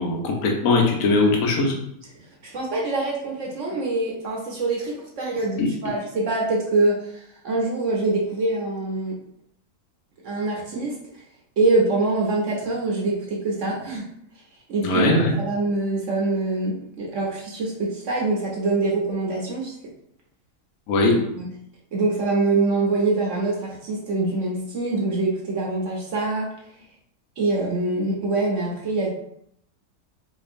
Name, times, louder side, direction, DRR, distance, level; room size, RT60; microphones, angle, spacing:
voice 1, 0.0-1.7 5.6-5.7 14.8-15.3 20.9-21.1, left 2 dB, 65° left, 0 dB, 1.1 m, -20 dB
voice 2, 2.1-9.2 10.2-11.0 11.6-14.0 14.7-15.1 15.4-19.7 21.4-21.5 21.9-26.5 27.4-29.1, right 2 dB, 60° right, -2 dB, 0.9 m, -24 dB
4.2 x 2.8 x 2.5 m, 0.73 s
omnidirectional pair, 1.7 m